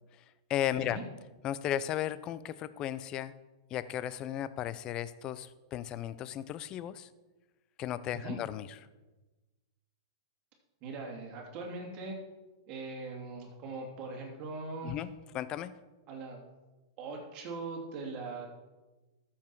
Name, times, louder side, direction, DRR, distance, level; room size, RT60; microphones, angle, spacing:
voice 1, 0.5-1.0 1.4-3.3 3.7-7.1 7.8-8.7 14.8-15.7, left 11 dB, 35° left, 15 dB, 0.5 m, -35 dB
voice 2, 10.8-12.1 12.7-15.0 16.1-16.4 17.0-18.5, right 3 dB, 40° right, 0 dB, 2.9 m, -41 dB
13.5 x 7.3 x 4.7 m, 1.2 s
hypercardioid pair, 120°, 2 cm